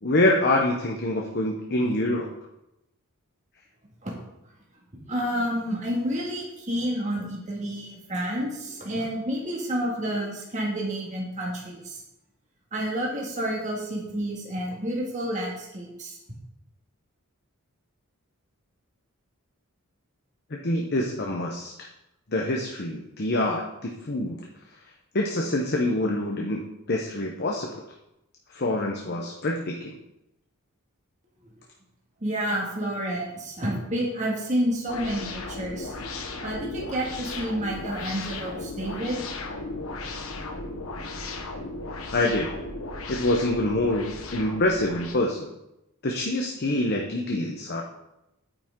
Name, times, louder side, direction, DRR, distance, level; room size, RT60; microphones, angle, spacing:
voice 1, 0.0-2.3 20.5-21.7 22.3-24.4 25.1-27.8 28.5-30.0 42.1-42.5 43.1-45.5 46.0-47.8, left 1 dB, 45° left, 0 dB, 0.9 m, -26 dB
voice 2, 5.1-12.0 12.7-16.2 32.2-36.0 36.4-39.2, equal, 35° right, -3 dB, 2.0 m, -29 dB
sound 1, 34.9-45.1, left 2 dB, 70° left, 1.2 m, -36 dB
9.0 x 9.0 x 3.8 m, 0.87 s
head